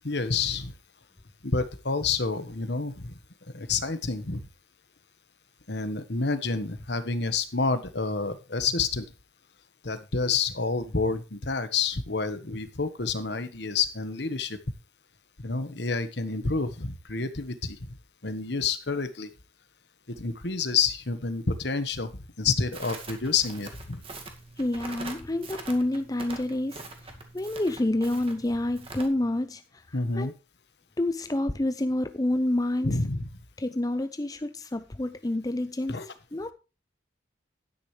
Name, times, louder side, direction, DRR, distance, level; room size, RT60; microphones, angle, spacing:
voice 1, 0.0-0.7 1.4-3.2 3.5-4.5 5.7-9.1 9.8-14.6 15.4-17.9 18.2-19.3 20.2-24.0 29.9-30.3 32.8-33.3 35.9-36.1, left 4 dB, 60° left, 1.3 m, -29 dB
Crackle, 22.7-29.1, right 3 dB, 30° right, 2.0 m, -43 dB
voice 2, 24.6-30.3 31.0-33.0 33.6-36.0 36.3-36.5, left 1 dB, 20° left, 0.5 m, -28 dB
12.0 x 10.0 x 3.3 m
head